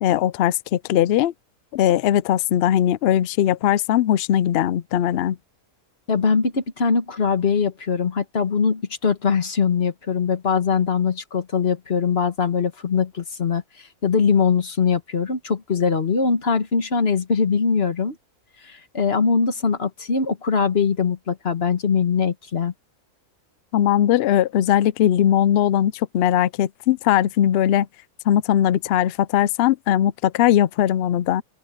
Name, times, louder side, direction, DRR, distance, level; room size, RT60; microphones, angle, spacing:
voice 1, 0.0-1.3 1.7-5.4 23.7-27.9 28.3-31.4, left 11 dB, 65° left, 0.6 m, -19 dB
voice 2, 6.1-18.1 18.6-22.7, left 5 dB, 45° left, 1.7 m, -22 dB
open air
omnidirectional pair, 1.5 m